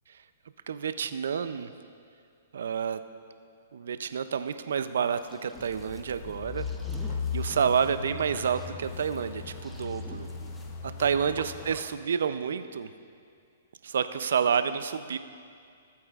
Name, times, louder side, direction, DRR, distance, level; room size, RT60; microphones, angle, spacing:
voice 1, 0.7-1.7 2.5-3.0 3.7-6.7 7.3-10.3 11.0-12.9 13.8-15.2, right 7 dB, 75° right, 11 dB, 0.4 m, -29 dB
sound 1, 4.8-11.9, right 1 dB, ahead, 0.6 m, -51 dB
sound 2, 5.6-11.8, left 5 dB, 45° left, 0.9 m, -37 dB
18.0 x 8.5 x 2.4 m, 2.3 s
hypercardioid pair, 145°, 0 cm